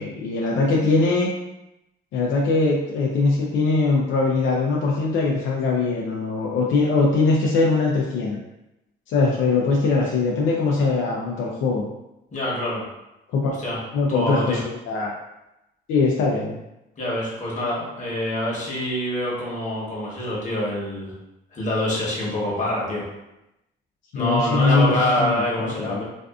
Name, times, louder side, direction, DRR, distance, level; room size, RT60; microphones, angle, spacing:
voice 1, 0.0-1.3 2.1-8.4 9.1-11.8 13.3-13.5 13.9-14.6 14.9-15.1 15.9-16.6 24.1-26.0, left 3 dB, 80° left, -3 dB, 0.5 m, -21 dB
voice 2, 12.3-12.8 13.6-13.8 14.1-14.6 17.0-21.1 21.5-23.1 24.1-26.0, left 1 dB, 40° left, -5 dB, 1.0 m, -25 dB
2.5 x 2.4 x 2.3 m, 0.91 s
cardioid pair, 90°, 20 cm